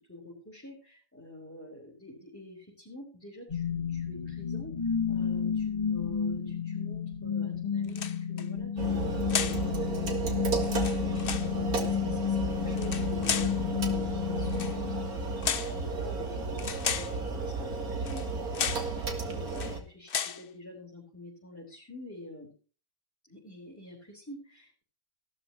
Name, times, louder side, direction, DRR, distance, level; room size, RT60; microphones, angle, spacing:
voice 1, 0.1-22.5 23.2-24.8, left 1 dB, 10° left, -3 dB, 4.2 m, -48 dB
sound 1, 3.5-15.5, left 7 dB, 25° left, 1.5 m, -31 dB
sound 2, 7.9-8.5 9.3-9.7 10.6-11.5 12.7-13.6 14.5-14.8 15.4-15.8 16.6-17.2 18.1-18.3 18.5-18.9 19.5-19.8 20.1-20.4, left 7 dB, 45° left, 0.9 m, -33 dB
sound 3, 8.8-19.8, right 4 dB, 85° right, 2.5 m, -33 dB
16.0 x 12.5 x 3.0 m, 0.35 s
omnidirectional pair, 1.5 m